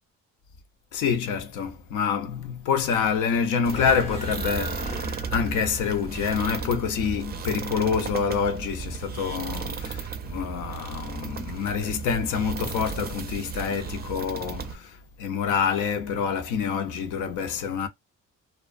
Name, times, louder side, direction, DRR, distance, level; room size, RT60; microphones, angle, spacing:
voice 1, 0.9-17.9, left 6 dB, 80° left, 0.6 m, -27 dB
sound 1, 3.6-14.8, right 6 dB, 35° right, 0.4 m, -34 dB
sound 2, 3.7-8.5, left 1 dB, 20° left, 0.5 m, -38 dB
2.3 x 2.3 x 2.4 m
cardioid pair, 90°, 30 cm